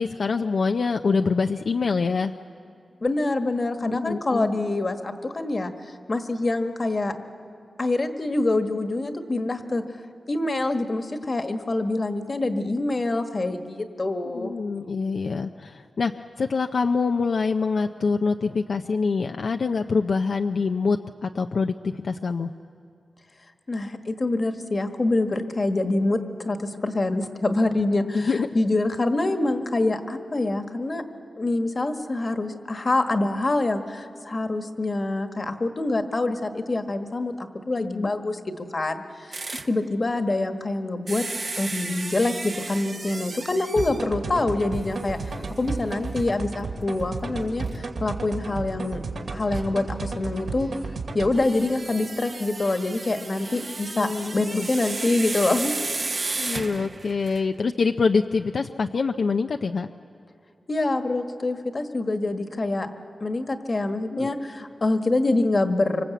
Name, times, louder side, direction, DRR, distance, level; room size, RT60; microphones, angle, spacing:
voice 1, 0.0-2.3 3.8-4.5 14.3-22.5 28.1-28.5 37.8-38.1 53.5-53.7 53.9-54.7 56.4-59.9 64.1-64.3, left 4 dB, 65° left, 5 dB, 0.6 m, -25 dB
voice 2, 3.0-5.7 6.1-7.2 7.8-9.8 10.3-14.5 23.7-31.0 31.4-41.2 41.6-49.0 49.3-50.7 51.1-55.7 60.7-62.9 63.2-66.0, left 2 dB, 35° left, 7 dB, 1.5 m, -25 dB
sound 1, 39.3-39.7 41.1-44.1 44.8-44.9 45.3-45.4 47.7-47.8 49.5-49.6 51.3-57.5, right 3 dB, 40° right, 0.9 m, -33 dB
sound 2, 43.8-51.4, right 3 dB, 75° right, 2.5 m, -33 dB
25.5 x 25.5 x 8.3 m, 2.5 s
wide cardioid pair, 115°, 0 cm